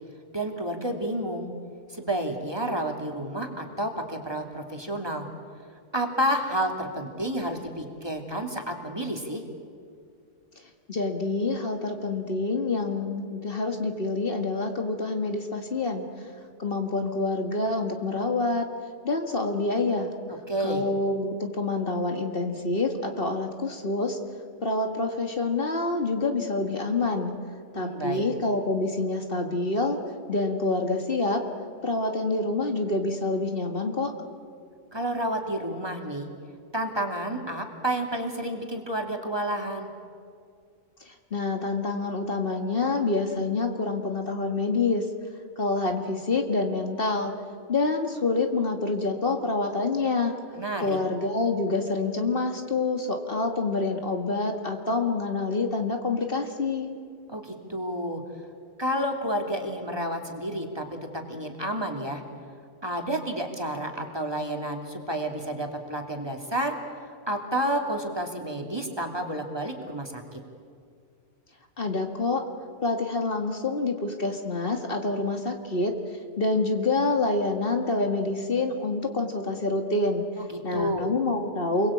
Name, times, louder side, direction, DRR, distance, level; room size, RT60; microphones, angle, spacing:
voice 1, 0.3-1.5 1.9-5.3 5.9-9.4 20.5-20.9 27.7-28.2 34.9-36.3 36.7-39.9 50.5-51.0 57.3-58.2 58.8-60.9 61.1-62.2 62.8-66.8 67.3-70.4 80.4-81.1, right 1 dB, 20° right, 3 dB, 2.8 m, -30 dB
voice 2, 10.9-16.1 16.6-18.7 19.0-20.1 20.6-24.2 24.6-27.3 27.7-30.0 30.3-31.4 31.8-34.1 41.0-45.1 45.6-47.3 47.7-50.3 50.8-56.9 71.8-72.4 72.8-75.9 76.4-80.2 80.6-81.9, left 3 dB, 50° left, 4 dB, 2.1 m, -27 dB
29.0 x 22.5 x 8.7 m, 2.3 s
omnidirectional pair, 1.2 m